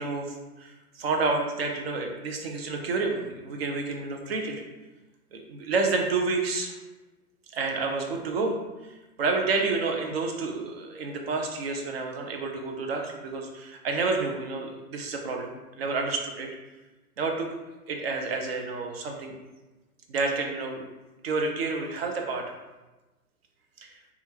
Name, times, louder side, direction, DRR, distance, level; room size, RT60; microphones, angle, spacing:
voice 1, 0.0-4.6 5.3-6.7 7.5-8.6 8.8-8.9 9.2-16.5 17.2-17.5 17.9-19.3 20.1-20.8 21.2-22.4 23.8-24.0, right 3 dB, 45° right, 2 dB, 0.5 m, -29 dB
3.4 x 2.3 x 2.7 m, 1.1 s
figure-of-eight pair, 125°, 45 cm